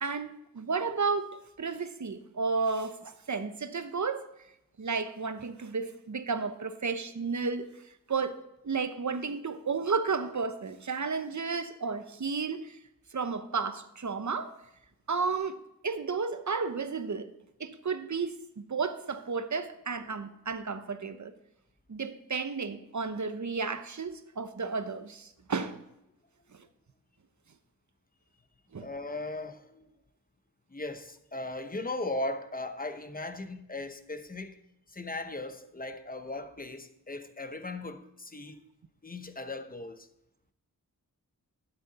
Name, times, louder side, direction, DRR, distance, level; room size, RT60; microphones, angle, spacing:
voice 1, 0.0-4.3 4.8-7.7 8.1-12.8 13.1-14.6 15.1-17.3 17.6-21.3 21.9-25.8 26.5-26.7 28.7-28.9, right 4 dB, 55° right, 0.9 m, -33 dB
voice 2, 28.8-29.9 30.7-34.6 34.9-38.6 39.0-40.1, left 2 dB, 25° left, 0.9 m, -38 dB
12.5 x 9.1 x 4.1 m
wide cardioid pair, 70°, 36 cm